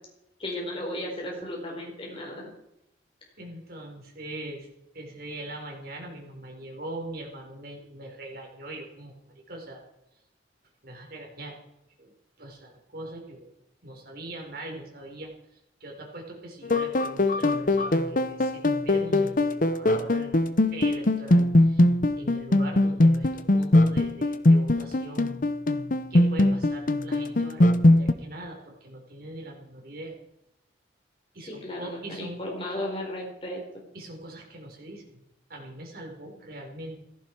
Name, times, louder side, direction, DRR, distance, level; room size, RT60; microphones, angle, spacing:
voice 1, 0.4-2.5 31.4-33.6, left 1 dB, 30° left, -2 dB, 4.5 m, -35 dB
voice 2, 3.4-4.7 4.9-9.1 9.5-9.8 10.8-11.5 12.0-13.5 13.8-20.4 20.7-21.8 22.2-25.3 26.1-30.1 31.3-32.7 33.9-35.2 35.5-37.0, right 1 dB, 55° right, 1 dB, 4.6 m, -41 dB
sound 1, 16.6-28.1, left 1 dB, 45° left, 0.9 m, -21 dB
16.5 x 14.5 x 4.7 m, 0.86 s
head